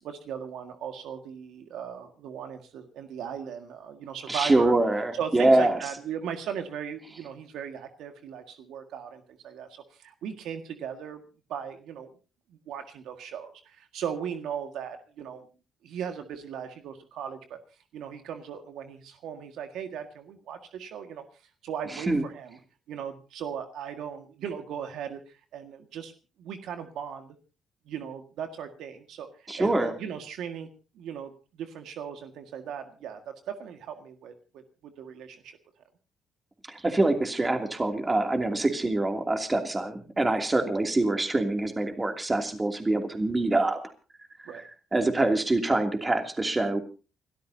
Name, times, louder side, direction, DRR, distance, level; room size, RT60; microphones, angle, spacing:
voice 1, 0.0-4.7 5.1-11.2 11.5-12.1 12.5-15.5 15.8-17.6 17.9-21.2 21.6-22.6 22.9-26.1 26.4-27.3 27.9-30.7 30.9-35.6 44.5-44.6, right 8 dB, 80° right, 6 dB, 1.8 m, -38 dB
voice 2, 4.3-5.8 22.1-22.2 29.5-29.9 36.7-43.8 44.9-46.8, right 2 dB, 20° right, 5 dB, 2.7 m, -25 dB
29.5 x 13.0 x 2.8 m, 0.33 s
cardioid pair, 90°, 0 cm